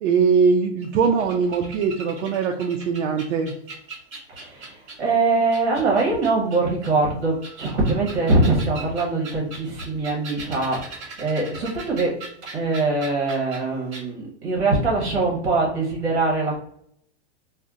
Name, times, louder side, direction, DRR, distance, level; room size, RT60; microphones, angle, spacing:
voice 1, 0.0-3.5, right 5 dB, 75° right, 2 dB, 0.5 m, -21 dB
sound 1, 0.8-5.1 5.5-6.9 7.3-13.6 13.9-14.0, right 3 dB, 25° right, 0.9 m, -40 dB
voice 2, 4.3-12.2 12.5-16.6, right 3 dB, 55° right, -1 dB, 1.0 m, -23 dB
2.6 x 2.1 x 3.5 m, 0.69 s
supercardioid pair, 180°, 35 cm